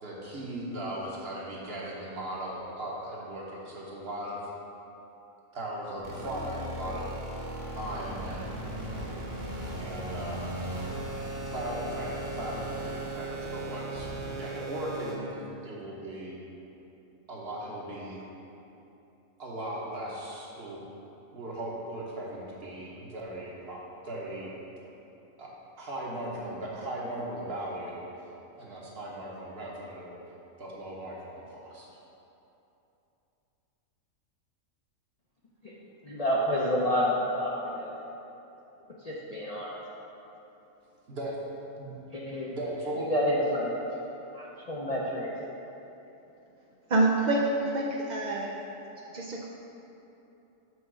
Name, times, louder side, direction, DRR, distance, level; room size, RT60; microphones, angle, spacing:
voice 1, 0.0-4.4 5.5-7.5 7.7-8.6 9.8-10.4 11.5-16.4 17.3-18.2 19.4-20.8 21.3-24.5 25.4-25.5 25.8-28.0 28.6-30.1 30.6-31.9 41.1-41.4 41.8-41.9 42.5-43.1, right 1 dB, 50° right, -4 dB, 1.2 m, -38 dB
sound 1, 6.0-15.1, right 1 dB, 25° right, 1.0 m, -37 dB
voice 2, 36.0-37.9 39.0-39.7 42.1-42.5 43.0-43.7 44.3-45.3, equal, 45° left, -6 dB, 0.5 m, -29 dB
voice 3, 46.9-48.5 49.1-49.5, right 2 dB, 70° right, -2 dB, 0.4 m, -26 dB
6.2 x 3.6 x 6.0 m, 2.9 s
omnidirectional pair, 1.4 m